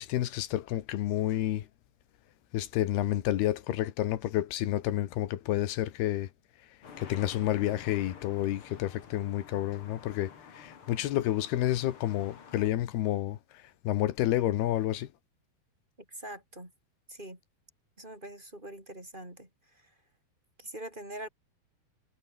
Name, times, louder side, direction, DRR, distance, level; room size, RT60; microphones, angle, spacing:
voice 1, 0.0-1.7 2.5-6.3 7.0-13.4 13.8-15.1, left 13 dB, 80° left, 3.4 m, -30 dB
sound 1, 6.8-12.7, left 6 dB, 40° left, 2.8 m, -50 dB
voice 2, 16.1-16.7 17.1-17.4 18.0-19.8 20.6-21.3, right 1 dB, 10° right, 6.4 m, -43 dB
omnidirectional pair, 4.6 m